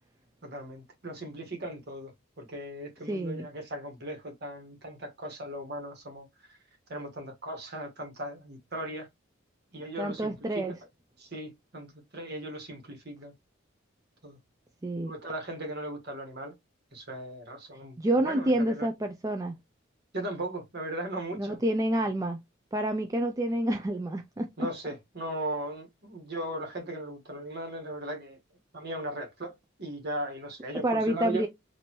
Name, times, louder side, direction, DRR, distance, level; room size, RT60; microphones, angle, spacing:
voice 1, 0.4-2.1 2.4-6.6 6.9-9.1 9.7-10.8 11.2-13.3 14.2-14.4 15.0-16.5 16.9-18.9 20.1-21.6 24.6-28.4 28.7-31.5, right 1 dB, 55° right, 1.4 m, -38 dB
voice 2, 3.1-3.5 10.0-10.7 14.8-15.1 18.0-19.6 21.4-22.4 22.7-24.7 30.7-31.5, right 1 dB, 15° right, 0.4 m, -28 dB
4.4 x 2.6 x 2.9 m
head